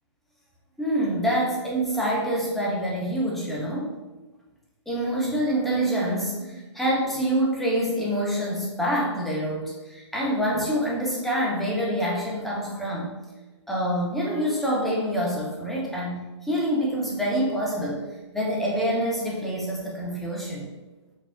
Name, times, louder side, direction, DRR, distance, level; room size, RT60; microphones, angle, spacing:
voice 1, 0.8-3.9 4.9-13.1 13.7-18.0 18.3-20.7, equal, ahead, -5 dB, 0.4 m, -26 dB
4.2 x 2.0 x 2.3 m, 1.2 s
figure-of-eight pair, 125°, 15 cm